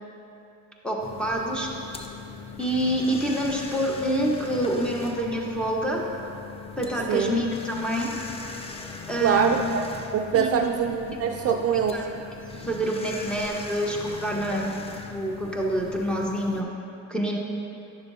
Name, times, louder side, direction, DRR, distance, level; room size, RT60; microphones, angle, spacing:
voice 1, 0.8-1.7 2.6-6.0 6.8-8.1 9.1-9.5 10.3-10.6 11.4-11.5 11.9-12.1 12.7-16.7 17.1-17.4, equal, 5° left, -2 dB, 1.2 m, -27 dB
sound 1, 1.0-16.6, left 4 dB, 20° left, 0.6 m, -40 dB
voice 2, 9.2-9.8 10.1-12.0, right 7 dB, 55° right, 5 dB, 0.4 m, -24 dB
10.5 x 6.8 x 2.7 m, 2.8 s
cardioid pair, 90°, 30 cm